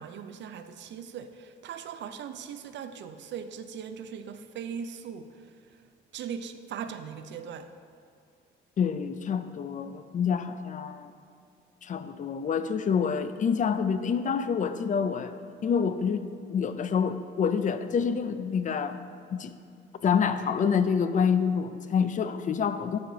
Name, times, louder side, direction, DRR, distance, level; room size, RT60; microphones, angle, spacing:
voice 1, 0.0-5.3 6.1-7.7, right 7 dB, 65° right, 9 dB, 0.5 m, -39 dB
voice 2, 8.8-11.1 11.8-15.3 15.6-19.0 19.3-19.5 20.0-23.0, left 6 dB, 40° left, 11 dB, 0.4 m, -27 dB
9.5 x 4.6 x 3.9 m, 2.4 s
cardioid pair, 90°, 20 cm